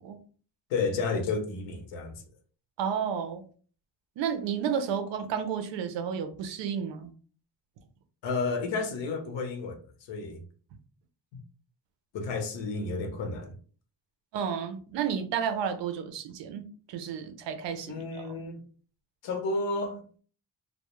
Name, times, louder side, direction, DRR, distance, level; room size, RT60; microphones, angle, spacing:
voice 1, 0.7-2.2 8.2-10.4 12.1-13.5 17.9-18.6 19.2-20.0, left 3 dB, 90° left, 0.7 m, -31 dB
voice 2, 2.8-3.4 4.2-7.1 14.3-16.6 16.9-18.3, right 7 dB, 85° right, 0.5 m, -31 dB
2.2 x 2.1 x 2.9 m
wide cardioid pair, 180°, 43 cm